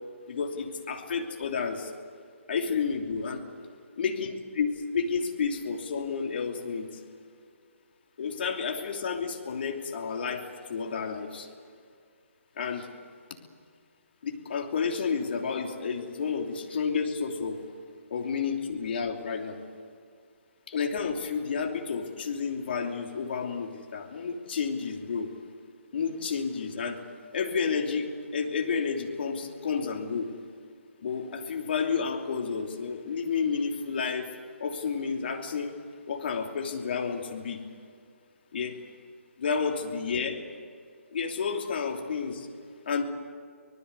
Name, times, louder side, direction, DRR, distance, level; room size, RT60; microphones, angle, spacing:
voice 1, 0.3-1.9 2.5-3.4 4.0-6.9 8.2-11.5 12.6-12.9 14.2-17.6 18.1-19.6 20.7-25.3 25.9-27.0 27.3-30.3 31.0-34.3 34.6-35.8 36.1-37.6 38.5-38.8 39.4-40.4 41.1-42.5 42.9-43.0, left 5 dB, 45° left, 2 dB, 3.0 m, -31 dB
25.0 x 19.5 x 8.2 m, 2.2 s
figure-of-eight pair, 140°, 8 cm